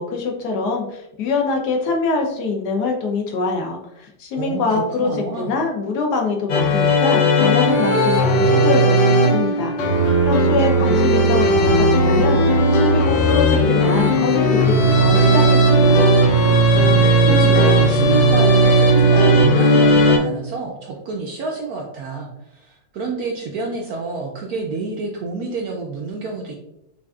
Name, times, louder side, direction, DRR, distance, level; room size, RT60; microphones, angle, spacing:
voice 1, 0.0-5.1 5.4-9.7 10.2-16.2, left 4 dB, 70° left, 2 dB, 1.1 m, -24 dB
voice 2, 4.4-5.5 17.2-26.5, right 4 dB, 70° right, 0 dB, 0.9 m, -28 dB
sound 1, 6.5-20.2, right 1 dB, 85° left, 1.5 m, -15 dB
5.6 x 2.5 x 2.3 m, 0.82 s
omnidirectional pair, 2.0 m